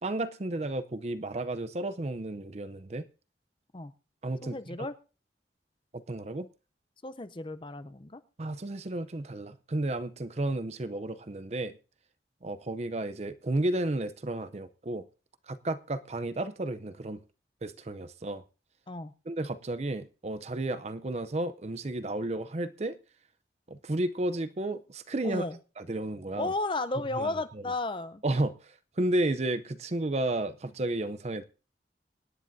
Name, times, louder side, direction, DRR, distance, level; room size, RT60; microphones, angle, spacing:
voice 1, 0.0-3.1 4.2-4.6 5.9-6.5 8.4-11.8 12.4-15.0 15.5-17.2 17.6-18.4 19.3-23.0 23.7-25.4 25.8-26.5 27.1-27.3 28.2-31.4, right 2 dB, 35° right, 0.6 m, -32 dB
voice 2, 4.4-4.9 7.0-8.2 18.9-19.1 25.2-25.6 26.4-28.2, left 2 dB, 30° left, 0.5 m, -33 dB
25.5 x 9.9 x 2.6 m
head